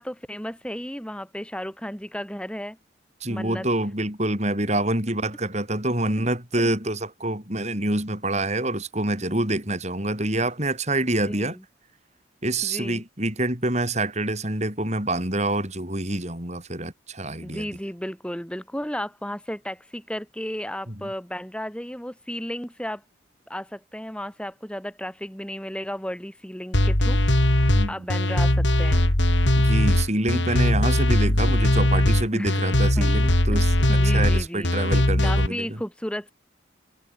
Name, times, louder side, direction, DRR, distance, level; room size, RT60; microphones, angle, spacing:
voice 1, 0.0-2.8 3.3-3.7 6.6-6.7 11.2-11.6 12.6-13.0 17.4-23.0 23.5-27.2 27.5-29.1 32.3-32.7 32.9-33.1 33.5-33.6 33.9-34.7 35.2-36.3, equal, 5° left, 5.8 m, -34 dB
voice 2, 3.2-11.6 12.4-17.7 20.9-21.0 27.7-28.1 29.6-35.8, right 1 dB, 35° right, 7.2 m, -26 dB
sound 1, 26.7-35.5, left 1 dB, 75° left, 4.4 m, -20 dB
head